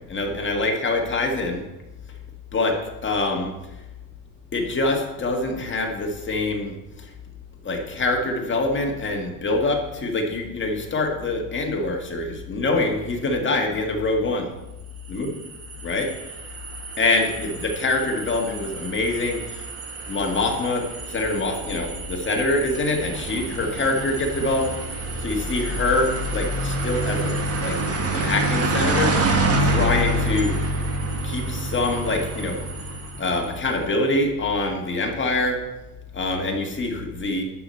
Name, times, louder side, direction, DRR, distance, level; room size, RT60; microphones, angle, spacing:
voice 1, 0.1-1.6 2.5-2.8 3.0-3.5 4.5-6.7 7.6-14.5 15.1-15.3 15.8-16.1 17.0-19.6 20.1-24.7 25.2-27.8 28.1-29.2 29.6-30.6 31.2-32.6 33.2-35.6 36.1-37.4, left 2 dB, 25° left, 2 dB, 1.8 m, -25 dB
sound 1, 15.0-33.6, right 1 dB, 35° right, 1.7 m, -27 dB
11.5 x 4.9 x 7.7 m, 0.97 s
cardioid pair, 145°, 42 cm